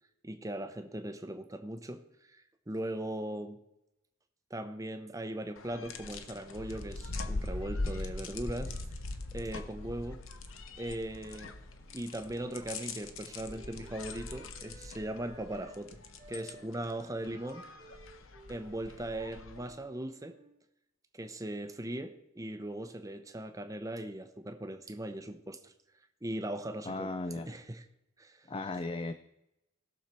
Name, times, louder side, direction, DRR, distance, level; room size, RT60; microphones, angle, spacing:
voice 1, 0.2-2.4 2.7-3.6 4.5-8.7 9.3-10.2 10.8-11.5 11.9-16.0 16.3-17.6 18.5-20.4 21.1-25.7 26.2-27.1 27.5-27.8 28.2-28.5, right 1 dB, 15° right, 0.8 m, -39 dB
sound 1, 5.6-19.7, left 2 dB, 70° left, 1.0 m, -42 dB
Wind instrument woodwind instrument, 11.8-15.8 16.2-20.6, right 2 dB, 35° right, 1.2 m, -57 dB
voice 2, 26.9-27.5 28.5-29.1, left 2 dB, 25° left, 0.4 m, -36 dB
19.0 x 6.6 x 4.4 m
head